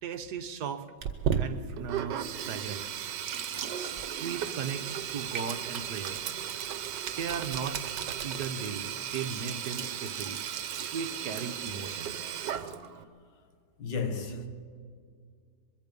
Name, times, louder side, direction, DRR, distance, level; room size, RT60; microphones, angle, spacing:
voice 1, 0.0-0.9 1.3-2.9 3.7-6.3 7.2-7.8 8.2-10.4 10.8-12.1, right 6 dB, 70° right, 1.6 m, -37 dB
sound 1, 1.0-9.7 10.0-10.8 11.1-11.8 12.1-12.2, right 6 dB, 50° right, 2.0 m, -49 dB
Sink (filling or washing), 1.0-13.0, right 8 dB, 85° right, 1.5 m, -35 dB
voice 2, 13.8-14.5, left 4 dB, 85° left, 2.1 m, -33 dB
23.5 x 23.0 x 5.3 m
omnidirectional pair, 1.8 m